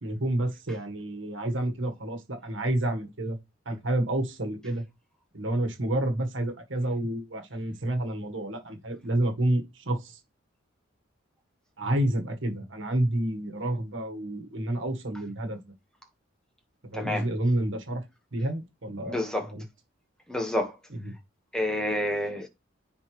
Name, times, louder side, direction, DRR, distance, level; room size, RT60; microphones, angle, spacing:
voice 1, 0.0-3.4 3.6-4.8 5.3-10.2 11.8-15.7 16.8-18.0 18.3-19.2 19.5-19.6 21.0-21.1, right 1 dB, 75° right, 1.5 m, -29 dB
voice 2, 16.9-17.3 19.0-19.5 20.3-20.8 21.5-22.5, left 1 dB, 5° left, 1.5 m, -29 dB
9.7 x 4.0 x 3.2 m
head